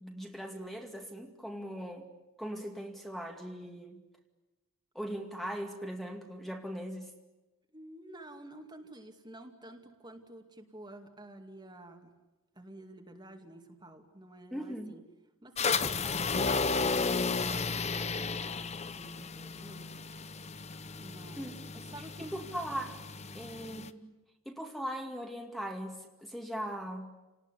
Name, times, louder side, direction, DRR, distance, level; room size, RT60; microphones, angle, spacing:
voice 1, 0.0-2.1 2.4-4.0 4.9-7.1 14.5-14.9 21.4-21.5 21.9-22.0 22.3-23.0 23.3-24.1 24.5-27.1, equal, ahead, 2 dB, 2.3 m, -39 dB
voice 2, 7.7-12.1 12.5-15.0 15.4-18.6 18.8-19.8 21.0-22.5 23.3-23.4, right 1 dB, 20° right, 4 dB, 2.4 m, -51 dB
sound 1, 15.6-23.9, left 4 dB, 30° left, 0.9 m, -33 dB
30.0 x 19.5 x 9.9 m, 1.1 s
head